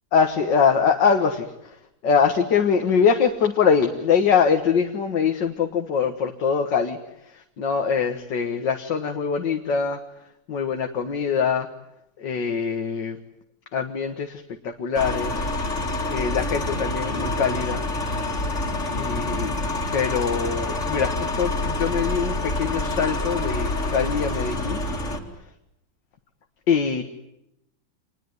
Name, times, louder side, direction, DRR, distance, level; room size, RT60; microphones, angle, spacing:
voice 1, 0.1-1.8 2.0-7.0 7.2-10.0 10.5-11.7 12.2-13.2 13.7-15.5 16.1-17.8 18.9-19.6 19.9-24.8 26.7-27.0, left 6 dB, 70° left, 5 dB, 2.2 m, -23 dB
sound 1, 15.0-25.2, left 2 dB, 40° left, 3.1 m, -27 dB
27.0 x 20.5 x 9.5 m, 0.83 s
omnidirectional pair, 2.0 m